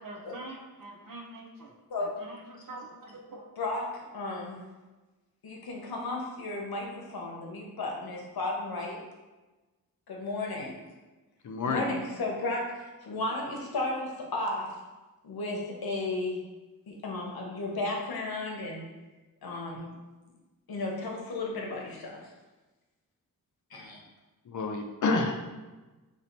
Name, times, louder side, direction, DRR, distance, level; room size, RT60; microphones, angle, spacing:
voice 1, 0.0-3.5, right 2 dB, 60° right, 0 dB, 0.7 m, -45 dB
voice 2, 4.1-4.6 5.4-9.0 10.1-10.8 11.6-14.7 15.2-16.4 16.9-18.9 19.4-19.9 20.7-22.1 23.7-24.0, left 2 dB, 75° left, -1 dB, 0.9 m, -34 dB
voice 3, 11.4-11.9 24.5-25.4, left 3 dB, 55° left, 4 dB, 0.5 m, -29 dB
3.0 x 2.8 x 4.4 m, 1.2 s
wide cardioid pair, 100°, 37 cm